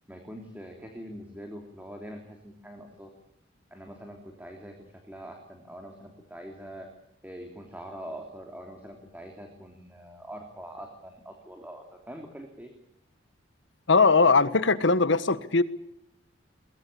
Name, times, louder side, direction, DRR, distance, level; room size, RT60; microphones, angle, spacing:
voice 1, 0.1-3.1 3.7-6.9 7.2-12.7, equal, 10° right, 3 dB, 3.2 m, -43 dB
voice 2, 13.9-15.6, left 4 dB, 70° left, 15 dB, 1.4 m, -20 dB
22.5 x 20.5 x 8.6 m, 0.79 s
head